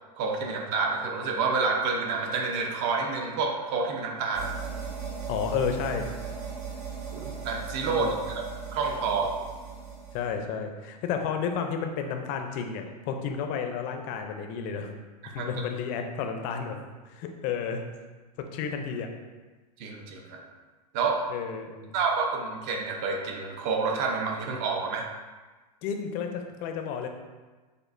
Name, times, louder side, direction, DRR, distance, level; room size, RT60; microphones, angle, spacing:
voice 1, 0.2-4.5 7.1-8.4 8.7-9.3 15.4-15.5 19.8-20.4 20.9-21.2 21.9-25.1, right 4 dB, 40° right, 2 dB, 0.7 m, -28 dB
sound 1, 4.3-10.4, right 6 dB, 70° right, 1.0 m, -38 dB
voice 2, 5.3-6.1 7.8-8.3 10.1-14.9 15.3-16.8 17.1-17.8 18.4-19.1 21.3-21.9 25.8-27.1, left 6 dB, 40° left, 5 dB, 0.5 m, -32 dB
6.4 x 2.6 x 2.5 m, 1.3 s
hypercardioid pair, 130°, 21 cm